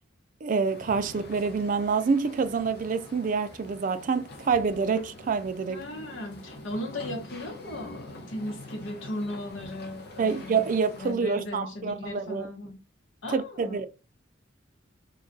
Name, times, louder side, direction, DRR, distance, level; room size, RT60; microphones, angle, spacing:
voice 1, 0.4-5.8 10.2-12.5 13.3-13.9, right 5 dB, 45° right, 0.3 m, -27 dB
sound 1, 0.7-11.1, left 2 dB, 55° left, 0.7 m, -45 dB
voice 2, 5.7-10.6 11.0-12.8 13.2-13.9, left 1 dB, 85° left, 0.9 m, -37 dB
2.3 x 2.2 x 3.9 m
head